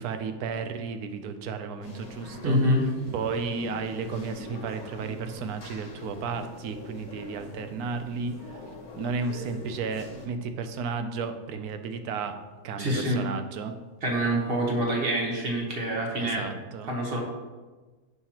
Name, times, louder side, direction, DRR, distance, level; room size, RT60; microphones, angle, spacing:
voice 1, 0.0-2.6 3.1-8.6 9.0-12.4 12.6-13.7 16.2-16.9, right 5 dB, 80° right, 8 dB, 1.1 m, -33 dB
sound 1, 1.8-10.3, left 2 dB, 75° left, 1.5 m, -43 dB
voice 2, 2.4-2.9 12.8-13.2 14.0-16.4 16.9-17.2, equal, 40° right, 0 dB, 1.2 m, -26 dB
6.6 x 5.7 x 2.9 m, 1.3 s
omnidirectional pair, 1.6 m